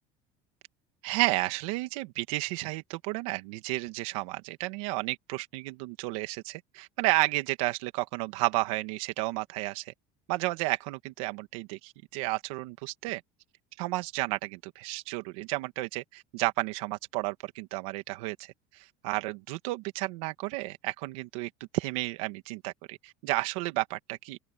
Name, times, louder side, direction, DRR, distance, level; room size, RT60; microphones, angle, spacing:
voice 1, 1.0-9.9 10.3-13.2 13.8-24.4, right 21 dB, 90° right, 2.4 m, -32 dB
open air
cardioid pair, 160°, 17 cm